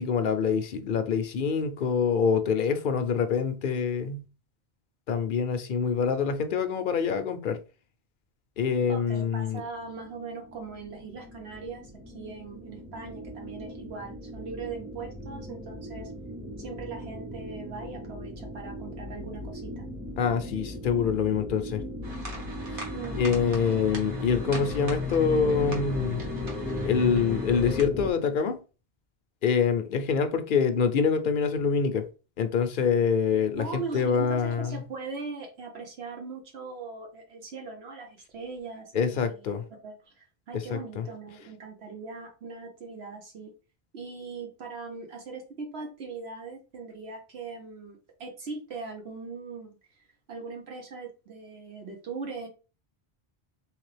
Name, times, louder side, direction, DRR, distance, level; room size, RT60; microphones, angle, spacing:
voice 1, 0.0-4.2 5.1-7.6 8.6-9.6 20.2-21.8 22.7-22.8 23.1-26.2 26.8-28.6 29.4-32.1 32.4-34.7 38.9-39.6 40.7-41.0, left 6 dB, 60° left, 0.7 m, -25 dB
voice 2, 8.9-16.1 16.6-19.9 22.9-23.5 33.6-39.5 39.8-43.5 43.9-52.5, right 4 dB, 75° right, 1.0 m, -40 dB
sound 1, 9.8-28.1, left 2 dB, 5° right, 0.5 m, -37 dB
sound 2, 22.0-27.8, right 1 dB, 55° right, 1.3 m, -43 dB
3.5 x 3.2 x 3.2 m
omnidirectional pair, 1.1 m